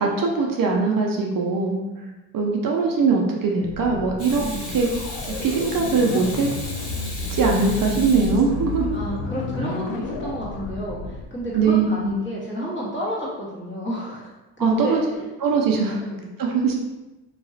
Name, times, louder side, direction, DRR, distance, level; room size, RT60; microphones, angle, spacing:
voice 1, 0.0-1.8 2.3-4.4 4.7-4.9 5.3-6.5 7.3-9.0 11.5-12.2 14.6-15.0 15.4-16.0 16.4-16.8, right 4 dB, 50° right, 0 dB, 0.6 m, -21 dB
sound 1, 3.6-11.2, left 3 dB, 80° left, 0.6 m, -31 dB
Water tap faucet / Sink (filling or washing), 4.2-9.0 11.4-11.5, left 1 dB, 60° left, 1.2 m, -37 dB
voice 2, 4.4-4.8 8.9-14.3 14.6-15.0 15.9-16.3, equal, 25° left, -7 dB, 1.5 m, -31 dB
3.9 x 2.8 x 2.7 m, 1.1 s
cardioid pair, 100°, 43 cm